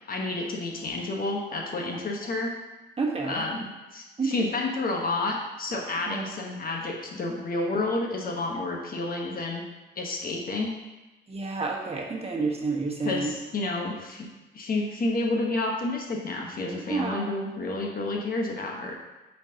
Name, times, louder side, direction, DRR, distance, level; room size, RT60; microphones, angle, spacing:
voice 1, 0.1-2.5 3.2-9.6 10.0-10.7 13.0-14.3 14.5-18.9, left 2 dB, 45° left, 0 dB, 1.2 m, -30 dB
voice 2, 3.0-3.4 4.2-4.3 6.1-6.2 11.3-13.3 16.9-17.3, right 3 dB, 30° right, -2 dB, 1.3 m, -29 dB
8.8 x 4.5 x 2.8 m, 1.1 s
cardioid pair, 90°, 20 cm